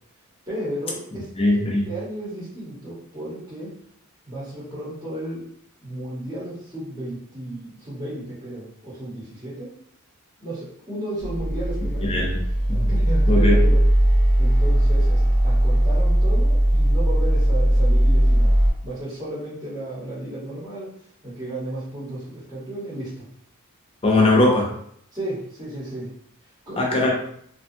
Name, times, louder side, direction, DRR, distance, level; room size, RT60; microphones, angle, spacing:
voice 1, 0.5-1.3 1.8-3.7 4.3-5.4 5.8-9.7 10.4-12.3 12.7-13.8 14.4-18.5 18.8-20.9 21.2-23.2 25.1-26.1 26.7-27.0, right 1 dB, 20° right, -11 dB, 1.0 m, -33 dB
voice 2, 1.4-1.8 12.1-12.4 12.7-12.9 13.3-13.6 24.0-24.7 26.8-27.1, left 2 dB, 25° left, -2 dB, 0.5 m, -19 dB
sound 1, 11.2-18.7, right 1 dB, 10° left, 1.1 m, -18 dB
2.5 x 2.3 x 2.6 m, 0.67 s
head